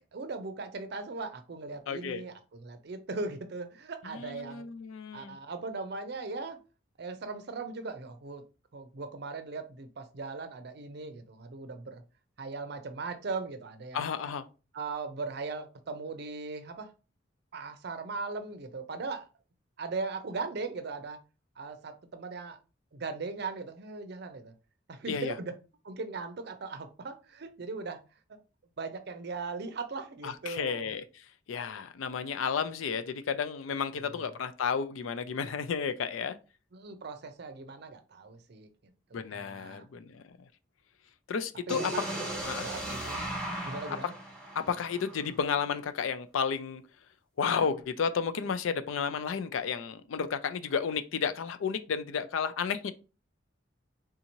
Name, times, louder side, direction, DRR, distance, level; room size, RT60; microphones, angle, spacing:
voice 1, 0.1-4.7 5.1-6.6 7.0-8.4 8.7-12.0 12.4-14.0 14.7-16.9 17.5-19.3 19.8-21.2 21.6-22.6 22.9-24.5 24.9-25.5 25.8-28.0 28.3-28.4 28.8-30.9 34.0-34.3 36.7-38.7 39.3-39.9 41.7-42.1 42.6-43.2 43.6-44.1, right 4 dB, 55° right, 0.5 m, -39 dB
voice 2, 1.9-2.2 4.1-5.4 13.9-14.5 25.1-25.3 30.2-36.4 39.1-40.3 41.3-41.9 42.5-42.7 44.6-46.8 47.4-52.9, left 6 dB, 85° left, 0.4 m, -32 dB
sound 1, 41.7-45.6, right 1 dB, 5° left, 1.0 m, -37 dB
3.7 x 2.7 x 2.9 m
head